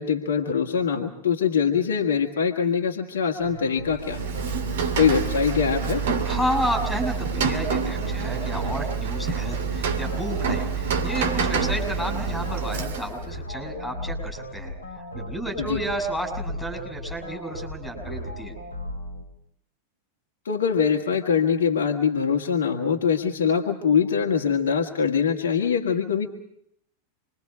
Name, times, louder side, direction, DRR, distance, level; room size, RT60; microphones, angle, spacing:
voice 1, 0.0-4.3 5.0-6.0 15.6-15.8 20.5-26.3, left 6 dB, 65° left, 3 dB, 1.8 m, -23 dB
sound 1, 3.4-19.2, equal, 90° right, 5.8 m, -37 dB
Rain, 4.0-13.3, right 5 dB, 60° right, 2.4 m, -27 dB
voice 2, 6.3-14.7 15.1-18.5, equal, 5° left, 6 dB, 6.4 m, -31 dB
27.5 x 23.0 x 5.0 m, 0.71 s
figure-of-eight pair, 90°, 0 cm